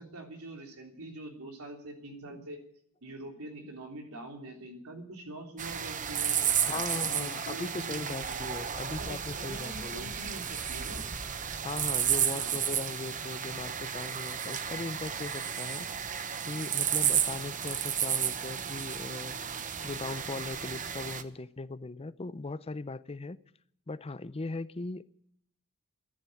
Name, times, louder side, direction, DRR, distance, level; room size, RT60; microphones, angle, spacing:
voice 1, 0.0-2.6 3.0-8.0 8.3-8.4 8.9-11.1 12.3-12.6, right 1 dB, 80° right, 3.3 m, -44 dB
sound 1, 5.6-21.2, right 8 dB, 35° right, 0.9 m, -32 dB
voice 2, 6.7-10.1 11.6-15.9 16.5-19.4 19.8-23.4 23.9-25.1, left 3 dB, 25° left, 0.6 m, -39 dB
14.0 x 11.5 x 8.5 m
head